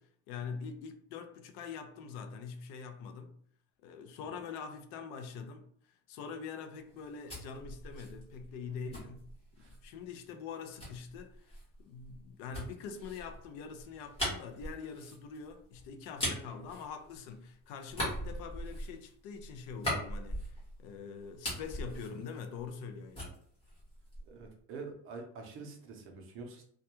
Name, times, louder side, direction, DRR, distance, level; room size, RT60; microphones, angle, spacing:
voice 1, 0.0-3.4 3.8-9.3 9.6-23.4, left 6 dB, 70° left, 0.5 m, -44 dB
sound 1, 6.9-9.9 10.8-17.5 17.8-20.9 21.2-22.9 23.1-24.5, equal, 15° left, 1.0 m, -40 dB
voice 2, 24.3-26.6, right 4 dB, 40° right, 0.5 m, -46 dB
2.2 x 2.2 x 2.8 m
cardioid pair, 175°, 32 cm